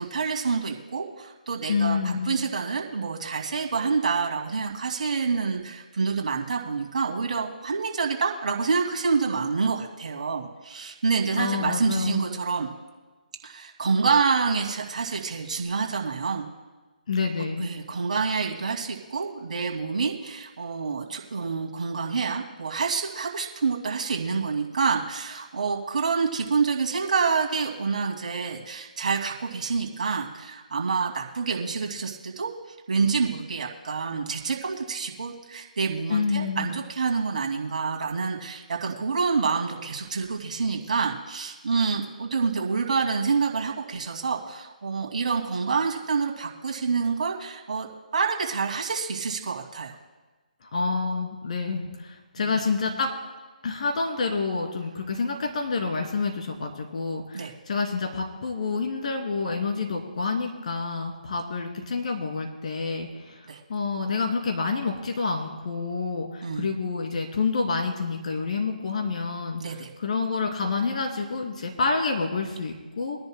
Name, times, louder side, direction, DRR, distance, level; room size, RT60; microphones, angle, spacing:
voice 1, 0.0-12.7 13.4-16.5 17.6-32.5 32.9-47.9 48.1-50.0 52.4-52.5 57.3-57.5 63.5-63.6 66.4-66.7 69.6-69.9, right 5 dB, 60° right, 1 dB, 2.4 m, -27 dB
voice 2, 1.7-2.4 11.3-12.2 17.1-17.7 36.1-36.7 50.6-53.1 53.6-63.4 63.7-69.6 70.0-73.2, left 4 dB, 55° left, 2 dB, 2.6 m, -28 dB
25.0 x 10.5 x 2.2 m, 1.3 s
figure-of-eight pair, 145°, 5 cm